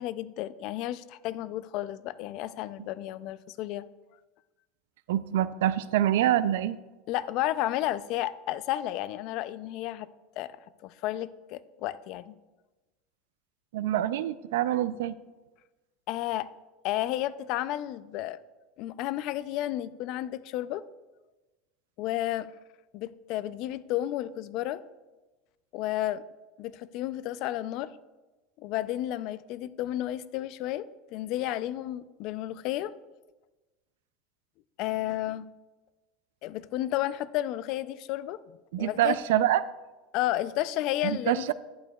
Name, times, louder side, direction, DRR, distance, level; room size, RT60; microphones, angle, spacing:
voice 1, 0.0-3.8 7.1-10.1 10.4-10.5 10.8-12.3 16.1-16.5 16.8-18.4 18.8-20.8 22.0-22.5 22.9-24.8 25.7-26.2 26.6-27.9 28.6-30.8 31.1-32.9 34.8-35.4 36.4-38.4 38.8-39.2 40.1-41.5, left 14 dB, 55° left, 16 dB, 0.4 m, -32 dB
voice 2, 5.1-6.8 13.7-15.2 38.7-39.6 41.0-41.5, right 12 dB, 85° right, 15 dB, 0.4 m, -26 dB
12.0 x 10.5 x 2.3 m, 1.1 s
supercardioid pair, 140°, 0 cm